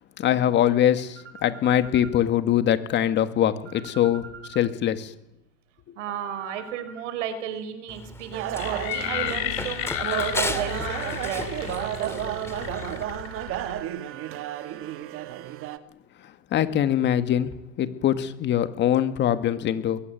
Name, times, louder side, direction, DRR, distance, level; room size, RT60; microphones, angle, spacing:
voice 1, 0.2-4.2 4.6-5.1 16.5-20.0, left 11 dB, 30° left, 11 dB, 2.0 m, -23 dB
voice 2, 1.3-2.1 3.9-4.6 6.0-12.4, right 9 dB, 65° right, 12 dB, 4.9 m, -35 dB
Run, 7.9-13.0, left 2 dB, 5° left, 2.3 m, -36 dB
sound 1, 8.3-15.8, right 12 dB, 35° right, 1.8 m, -32 dB
sound 2, 8.5-13.8, left 13 dB, 55° left, 4.1 m, -33 dB
23.0 x 22.0 x 9.3 m, 0.80 s
supercardioid pair, 135°, 39 cm